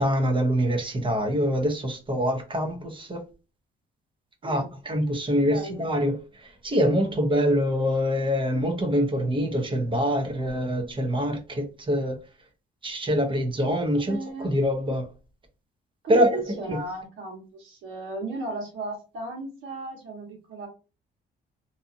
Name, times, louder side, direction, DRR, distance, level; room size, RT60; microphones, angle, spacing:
voice 1, 0.0-3.2 4.4-12.2 12.8-15.1 16.1-16.8, equal, 25° right, 0.7 m, -25 dB
voice 2, 5.5-5.8 14.0-14.5 16.0-20.7, right 2 dB, 80° right, 1.2 m, -35 dB
2.7 x 2.4 x 2.5 m
cardioid pair, 90°, 20 cm